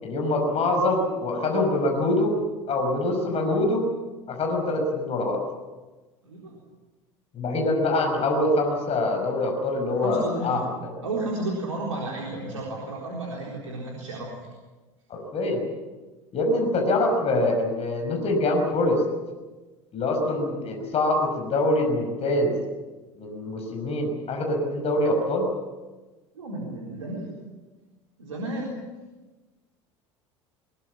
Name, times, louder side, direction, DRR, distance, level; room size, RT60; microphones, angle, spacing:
voice 1, 0.0-2.4 2.7-3.9 4.3-5.4 7.3-10.6 15.1-15.6 16.3-19.0 19.9-22.5 23.2-25.5, left 2 dB, 40° left, 2 dB, 5.9 m, -24 dB
voice 2, 6.2-6.6 9.9-10.6 11.0-14.5 26.3-27.3 28.2-28.8, right 2 dB, 85° right, -2 dB, 4.1 m, -32 dB
22.0 x 22.0 x 7.4 m, 1.2 s
figure-of-eight pair, 70°, 16 cm